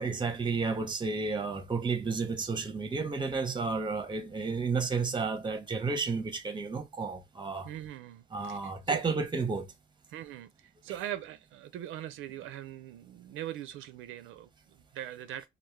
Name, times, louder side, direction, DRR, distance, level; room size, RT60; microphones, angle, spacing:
voice 1, 0.0-7.7 8.3-9.7, right 4 dB, 25° right, 0.6 m, -32 dB
voice 2, 7.6-9.1 10.1-15.5, right 12 dB, 85° right, 0.4 m, -41 dB
2.2 x 2.1 x 3.0 m
cardioid pair, 90°, 20 cm